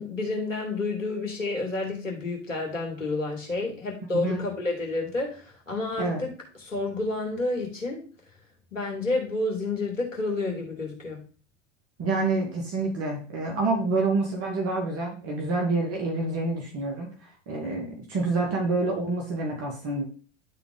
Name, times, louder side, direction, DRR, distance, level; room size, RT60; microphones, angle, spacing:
voice 1, 0.0-6.3 6.6-8.0 8.7-11.2, left 2 dB, 90° left, 1 dB, 2.7 m, -30 dB
voice 2, 4.1-4.5 6.0-6.2 12.0-17.1 17.5-20.1, right 3 dB, 40° right, 0 dB, 2.2 m, -27 dB
11.5 x 4.0 x 3.9 m, 0.38 s
hypercardioid pair, 90°, 38 cm